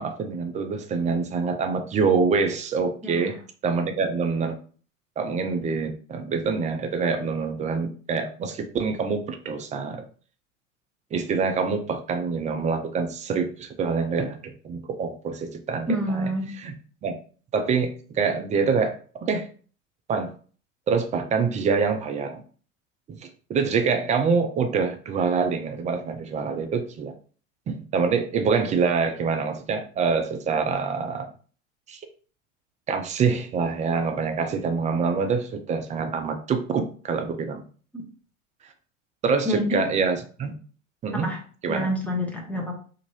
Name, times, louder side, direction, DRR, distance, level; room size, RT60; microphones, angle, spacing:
voice 1, 0.0-3.4 3.6-4.6 5.2-10.1 11.1-16.3 16.6-16.7 17.0-17.1 17.5-19.5 20.1-20.3 20.9-22.4 23.1-27.1 27.7-31.3 31.9-32.0 32.9-37.7 39.2-40.5 41.0-41.3 41.6-41.9, right 5 dB, 20° right, 6 dB, 0.3 m, -25 dB
voice 2, 3.0-3.3 15.9-16.5 39.4-39.8 41.1-41.4 41.7-42.8, equal, 5° left, 0 dB, 0.9 m, -27 dB
2.7 x 2.5 x 3.0 m, 0.42 s
hypercardioid pair, 85°, 38 cm